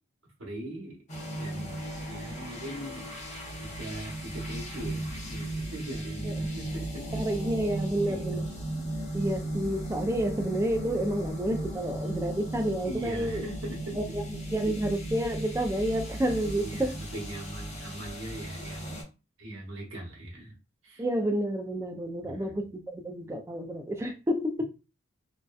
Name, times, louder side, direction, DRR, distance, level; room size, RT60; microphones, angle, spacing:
voice 1, 0.4-1.0 1.4-3.1 3.6-7.2 8.1-8.4 12.8-14.2 16.5-19.0 19.4-20.6 20.8-21.0 22.2-22.6, right 1 dB, 75° right, -1 dB, 0.9 m, -41 dB
sound 1, 1.1-19.0, right 1 dB, 35° left, 0.8 m, -36 dB
voice 2, 7.1-8.5 9.1-13.4 14.0-14.2 14.5-17.0 21.0-24.6, right 1 dB, 15° right, 3 dB, 0.3 m, -30 dB
2.6 x 2.1 x 2.3 m, 0.29 s
head